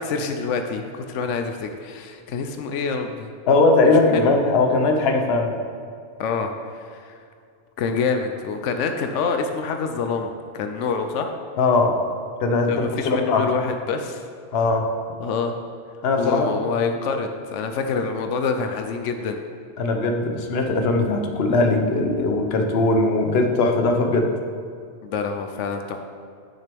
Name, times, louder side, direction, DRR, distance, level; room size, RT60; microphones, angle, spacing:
voice 1, 0.0-3.3 4.1-4.4 6.2-7.2 7.8-11.3 12.7-14.2 15.2-15.5 16.2-19.4 25.0-26.0, left 5 dB, 90° left, 6 dB, 0.9 m, -26 dB
voice 2, 3.5-5.6 11.6-12.0 12.4-13.5 14.5-14.9 16.0-16.5 19.8-24.3, left 3 dB, 65° left, 4 dB, 1.0 m, -20 dB
9.0 x 6.5 x 3.4 m, 2.2 s
omnidirectional pair, 1.2 m